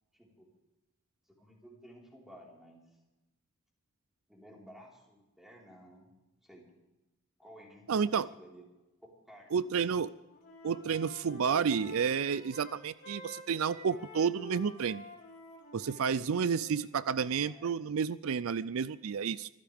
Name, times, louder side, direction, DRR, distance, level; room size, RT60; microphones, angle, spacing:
voice 1, 0.1-0.5 1.3-3.0 4.3-6.1 6.4-6.7 7.4-8.7 9.0-9.5 17.4-17.7, equal, ahead, -3 dB, 4.4 m, -55 dB
voice 2, 7.9-8.3 9.5-10.1 10.6-15.0 15.7-19.5, right 6 dB, 75° right, 17 dB, 0.4 m, -31 dB
Wind instrument woodwind instrument, 9.5-10.0 10.3-16.8, left 2 dB, 45° left, 4.6 m, -50 dB
24.5 x 15.0 x 3.5 m, 1.0 s
head